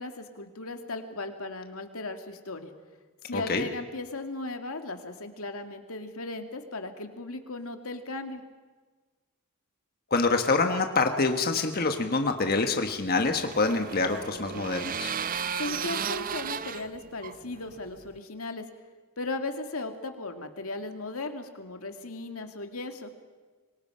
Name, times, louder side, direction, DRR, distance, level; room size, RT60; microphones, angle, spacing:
voice 1, 0.0-2.7 3.2-8.4 15.6-18.6 19.2-23.3, left 2 dB, 75° left, 6 dB, 2.2 m, -37 dB
voice 2, 3.3-3.6 10.1-15.1, left 3 dB, 45° left, 5 dB, 1.4 m, -26 dB
sound 1, 12.7-18.2, right 7 dB, 40° right, 0.7 m, -35 dB
26.5 x 24.0 x 5.7 m, 1.4 s
head